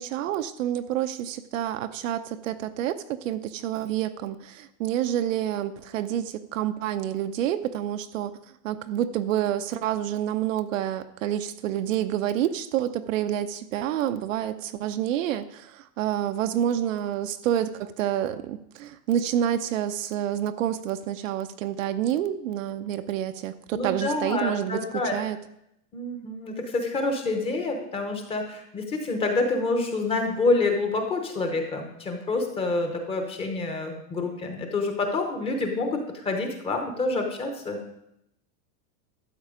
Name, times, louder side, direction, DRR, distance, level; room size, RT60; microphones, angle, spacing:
voice 1, 0.0-8.4 8.6-24.8 25.1-25.4, right 11 dB, 55° right, 10 dB, 0.7 m, -28 dB
voice 2, 23.7-25.2 25.9-37.8, left 3 dB, 10° left, 4 dB, 0.8 m, -27 dB
12.5 x 7.6 x 5.0 m, 0.80 s
supercardioid pair, 170°, 48 cm